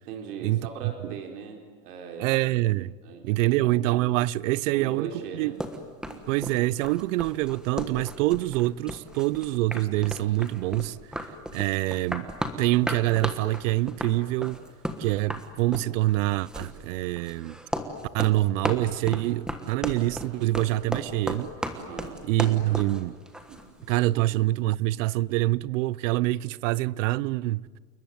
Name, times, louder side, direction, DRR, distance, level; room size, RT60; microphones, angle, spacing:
voice 1, 0.1-2.4 3.0-3.8 4.7-5.6 6.1-6.2 21.7-22.2 22.7-22.8 23.5-23.6 24.1-24.3, right 6 dB, 85° right, 4.2 m, -40 dB
voice 2, 2.2-3.0 3.2-5.5 6.3-11.0 11.5-12.3 12.6-14.6 15.0-17.6 18.1-21.5 22.2-23.1 23.9-27.8, right 17 dB, 55° right, 0.7 m, -25 dB
sound 1, 5.6-24.0, equal, ahead, 1.4 m, -35 dB
29.0 x 20.5 x 9.4 m
supercardioid pair, 170°, 45 cm